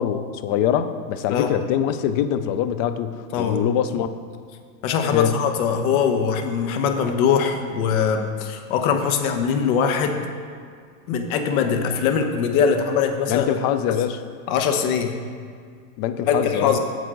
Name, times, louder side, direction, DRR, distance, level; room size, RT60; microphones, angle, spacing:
voice 1, 0.0-4.1 5.1-5.4 13.3-14.2 16.0-16.8, left 9 dB, 35° left, 11 dB, 0.5 m, -23 dB
voice 2, 4.8-10.2 11.1-13.5 13.9-14.0 14.5-15.1 16.3-16.8, left 6 dB, 60° left, 6 dB, 1.1 m, -22 dB
9.8 x 7.5 x 3.8 m, 2.1 s
hypercardioid pair, 115°, 48 cm